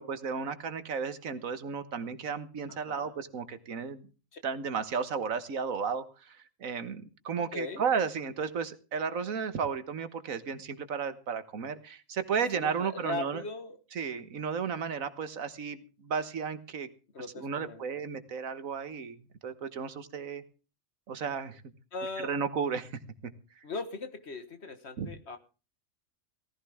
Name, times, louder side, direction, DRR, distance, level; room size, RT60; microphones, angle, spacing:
voice 1, 0.0-4.0 4.4-6.3 6.6-13.4 13.9-16.9 17.4-20.4 21.1-21.6 22.2-22.9 25.0-25.1, right 6 dB, 85° right, 11 dB, 1.7 m, -33 dB
voice 2, 2.7-3.1 4.3-4.4 7.4-7.8 12.5-13.8 17.1-18.0 21.9-22.3 23.6-25.4, left 3 dB, 55° left, 10 dB, 1.7 m, -39 dB
17.5 x 15.0 x 3.5 m, 0.34 s
omnidirectional pair, 1.4 m